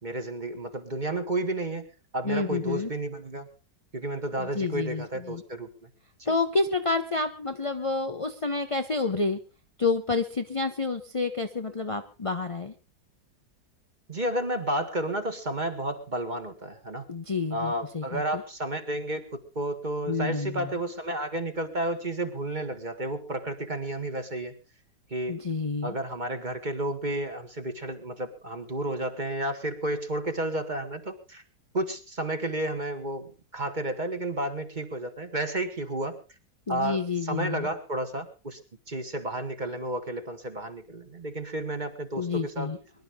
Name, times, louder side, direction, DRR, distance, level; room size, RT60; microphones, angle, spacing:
voice 1, 0.0-1.9 2.1-3.5 3.9-5.9 6.2-6.4 14.1-17.1 17.5-24.5 25.1-25.4 25.8-31.4 31.7-36.2 36.7-38.6 38.9-42.7, right 1 dB, 25° right, 6 dB, 1.7 m, -32 dB
voice 2, 2.2-2.9 4.4-5.4 6.3-9.4 9.8-12.7 17.1-18.4 20.1-20.7 25.3-25.9 36.7-37.7 42.2-42.8, left 3 dB, 45° left, 6 dB, 0.4 m, -29 dB
23.0 x 11.5 x 3.6 m, 0.32 s
omnidirectional pair, 1.9 m